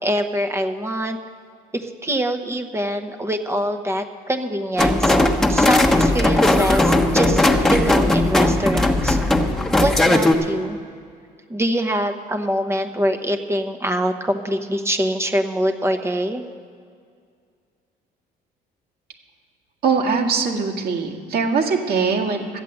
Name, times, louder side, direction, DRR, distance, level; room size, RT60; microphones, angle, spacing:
voice 1, 0.0-1.2 1.7-5.2 5.5-9.2 9.8-10.8 11.5-16.4, right 1 dB, 15° right, 5 dB, 0.9 m, -24 dB
sound 1, 4.8-10.3, left 1 dB, 5° left, 1.2 m, -17 dB
voice 2, 19.8-22.6, right 5 dB, 65° right, 1 dB, 1.8 m, -21 dB
12.5 x 8.3 x 7.8 m, 2.1 s
cardioid pair, 110°, 17 cm